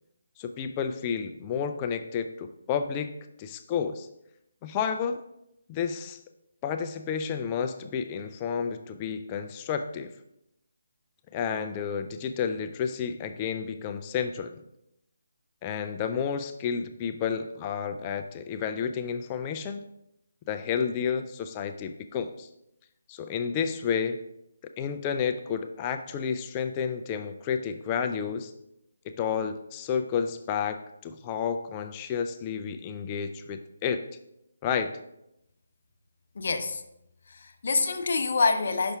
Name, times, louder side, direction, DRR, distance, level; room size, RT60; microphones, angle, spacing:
voice 1, 0.4-3.1 3.4-4.1 4.6-5.2 5.7-6.2 6.6-10.1 11.3-14.6 15.6-19.8 20.5-22.5 23.1-24.2 24.8-28.5 29.0-34.1 34.6-34.9, left 7 dB, 20° left, 7 dB, 0.3 m, -31 dB
voice 2, 36.4-36.8 37.3-39.0, left 4 dB, 55° left, 7 dB, 0.7 m, -26 dB
5.8 x 5.5 x 3.5 m, 0.83 s
hypercardioid pair, 160°, 0 cm